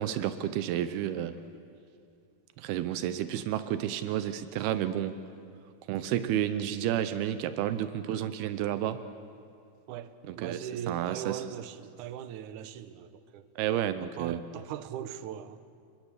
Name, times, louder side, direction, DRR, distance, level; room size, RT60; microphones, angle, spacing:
voice 1, 0.0-1.4 2.6-5.2 5.9-9.0 10.3-10.6 10.9-11.4 13.6-14.4, right 11 dB, 85° right, 2.8 m, -31 dB
voice 2, 9.9-13.5 14.0-15.6, right 10 dB, 70° right, 2.1 m, -40 dB
29.5 x 23.0 x 8.3 m
omnidirectional pair, 4.4 m